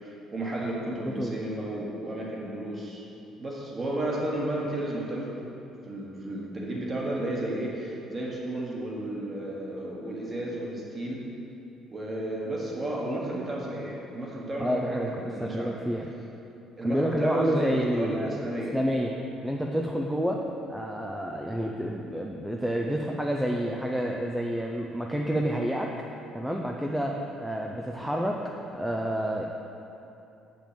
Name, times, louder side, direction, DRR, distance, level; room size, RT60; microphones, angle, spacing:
voice 1, 0.0-3.1 3.4-5.4 5.8-11.3 11.9-15.8 16.8-18.8, right 1 dB, 20° right, -2 dB, 1.3 m, -32 dB
voice 2, 1.1-1.4 14.6-15.1 15.4-16.1 16.8-18.4 18.7-19.2 19.4-20.4 20.7-25.9 26.3-28.4 28.7-29.5, equal, ahead, 0 dB, 0.4 m, -29 dB
7.6 x 5.2 x 6.8 m, 2.8 s
cardioid pair, 165°, 0 cm